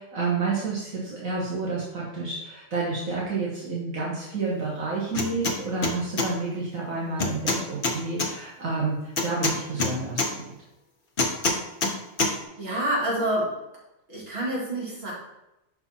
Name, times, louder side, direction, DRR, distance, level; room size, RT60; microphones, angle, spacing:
voice 1, 0.0-10.5, right 3 dB, 75° right, -5 dB, 1.7 m, -30 dB
sound 1, 5.1-5.6 5.8-6.3 7.2-8.3 9.2-10.3 11.2-11.9 12.2-12.3, left 3 dB, 45° left, 0.9 m, -24 dB
voice 2, 12.6-13.6 14.1-15.1, right 1 dB, 45° right, -6 dB, 2.5 m, -27 dB
5.6 x 4.8 x 4.3 m, 0.92 s
omnidirectional pair, 1.4 m